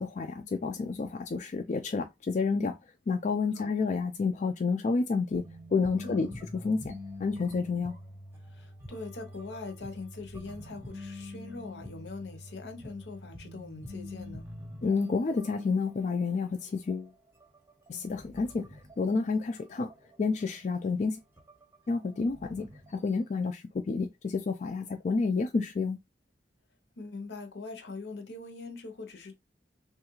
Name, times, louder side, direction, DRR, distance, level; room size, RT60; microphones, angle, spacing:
voice 1, 0.0-2.8 3.1-6.3 6.6-8.0 14.8-17.1 17.9-19.9 20.2-21.2 21.9-26.0, left 4 dB, 40° left, 0.3 m, -30 dB
sound 1, 5.3-15.6 15.8-16.1 16.4-16.5 16.9-19.5 19.9-20.4 20.9-21.0 21.4-23.3, left 1 dB, 15° right, 0.7 m, -45 dB
voice 2, 6.0-6.4 8.5-14.5 27.0-29.3, left 3 dB, 75° left, 0.7 m, -42 dB
3.1 x 2.3 x 3.0 m
head